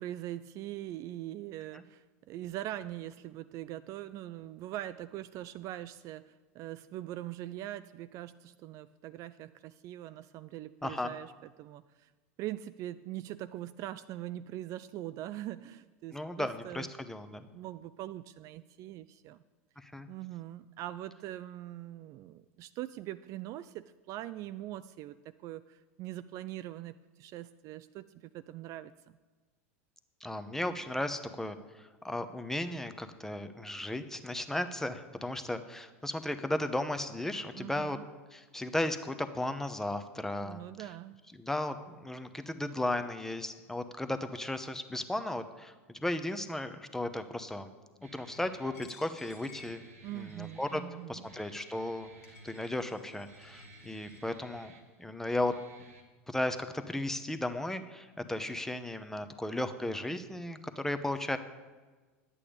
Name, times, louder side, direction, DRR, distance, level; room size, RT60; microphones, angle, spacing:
voice 1, 0.0-12.1 12.4-16.9 17.5-19.4 20.1-28.9 37.6-38.0 40.4-41.2 50.0-51.3, right 14 dB, 45° right, 13 dB, 0.3 m, -42 dB
voice 2, 10.8-11.1 16.1-17.4 19.8-20.1 30.2-38.0 38.3-40.6 41.4-47.7 48.0-49.8 50.1-50.8 51.1-52.1 52.4-54.7 55.0-55.6 56.3-61.4, left 1 dB, 5° left, 9 dB, 0.7 m, -35 dB
Guitar, 48.0-56.0, right 1 dB, 90° right, 1.4 m, -55 dB
Coin (dropping), 48.7-50.5 51.2-51.3 51.9-52.0 52.2-54.2, left 5 dB, 85° left, 1.7 m, -57 dB
11.0 x 8.5 x 5.2 m, 1.3 s
hypercardioid pair, 85°, 8 cm